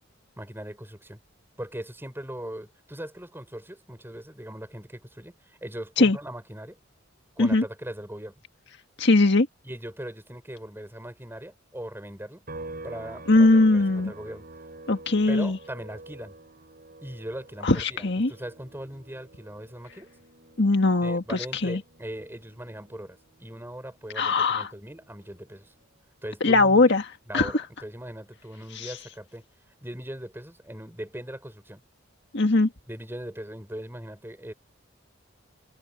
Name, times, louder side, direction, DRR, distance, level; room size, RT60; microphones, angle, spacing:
voice 1, 0.4-1.2 1.6-6.8 7.4-8.3 9.6-12.4 12.8-14.5 15.3-16.3 17.0-20.1 21.0-25.7 26.2-27.0 27.3-29.5 29.8-31.8 32.9-34.5, right 1 dB, 10° right, 6.3 m, -39 dB
voice 2, 9.0-9.5 13.3-14.1 14.9-15.6 17.6-18.3 20.6-21.8 24.2-24.7 26.4-27.0 27.3-27.5 28.7-28.9 32.3-32.7, left 2 dB, 60° left, 1.8 m, -20 dB
sound 1, 12.5-26.0 26.4-28.6, right 2 dB, 50° right, 6.3 m, -48 dB
head